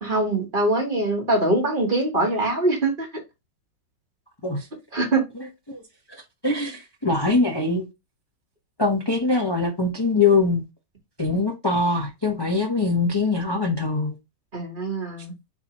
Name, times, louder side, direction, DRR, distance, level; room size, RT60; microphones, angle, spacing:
voice 1, 0.0-3.1 4.9-5.2 14.5-15.3, right 2 dB, 30° right, 1.4 m, -23 dB
voice 2, 6.4-7.9 8.8-10.6 11.2-14.2, left 3 dB, 25° left, 0.5 m, -22 dB
4.4 x 4.1 x 2.9 m
omnidirectional pair, 2.0 m